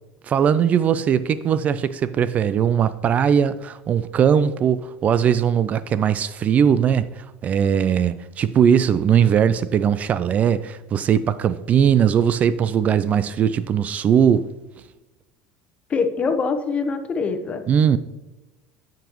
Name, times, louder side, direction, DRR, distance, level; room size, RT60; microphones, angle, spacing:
voice 1, 0.2-14.5 17.7-18.0, right 8 dB, 40° right, 0.3 m, -19 dB
voice 2, 15.9-17.6, left 4 dB, 35° left, 1.0 m, -23 dB
13.0 x 5.1 x 3.0 m
supercardioid pair, 90°, 4 cm